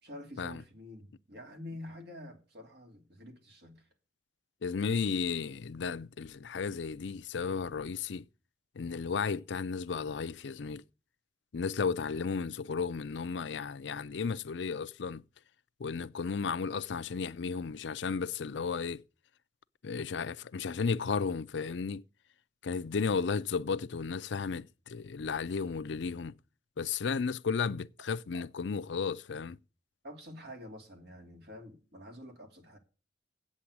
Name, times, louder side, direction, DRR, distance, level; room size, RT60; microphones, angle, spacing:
voice 1, 0.0-3.9 28.3-28.5 30.0-32.8, left 1 dB, 60° right, 2.8 m, -48 dB
voice 2, 4.6-8.2 8.8-10.8 11.5-15.2 15.8-19.0 19.8-22.0 22.6-26.3 26.8-29.6, left 5 dB, 75° left, 0.5 m, -34 dB
8.6 x 7.4 x 8.2 m
head